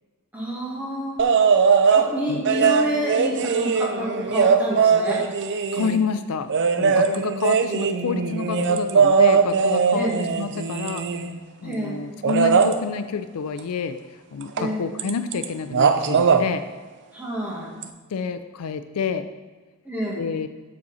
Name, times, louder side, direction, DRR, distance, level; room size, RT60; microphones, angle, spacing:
voice 1, 0.3-1.2 1.9-5.2 9.9-10.2 11.6-12.0 14.6-14.9 17.1-17.8 19.8-20.3, equal, 5° right, -5 dB, 1.9 m, -28 dB
sound 1, 1.2-2.1 2.5-6.0 6.5-11.4 12.2-12.7 14.6-14.7 15.0-15.5 15.7-16.4 17.8-17.9, right 5 dB, 55° right, 0.5 m, -20 dB
voice 2, 5.7-6.5 6.8-11.0 11.6-14.0 14.3-16.6 18.1-19.3 20.2-20.5, left 5 dB, 75° left, 10 dB, 0.4 m, -28 dB
7.3 x 6.2 x 4.1 m, 1.3 s
head